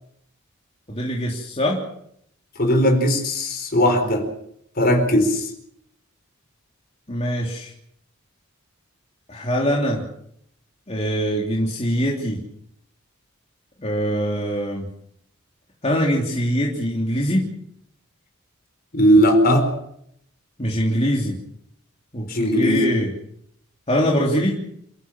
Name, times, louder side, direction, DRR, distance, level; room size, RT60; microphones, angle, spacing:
voice 1, 0.9-1.8 7.1-7.7 9.3-10.0 10.9-12.4 13.8-14.9 15.8-17.4 20.6-21.4 22.1-22.2 22.5-23.1 23.9-24.6, equal, 30° left, -2 dB, 3.3 m, -23 dB
voice 2, 2.6-4.2 4.8-5.5 18.9-19.7 22.3-22.9, equal, 45° left, 5 dB, 4.6 m, -18 dB
29.0 x 15.0 x 7.4 m, 0.72 s
head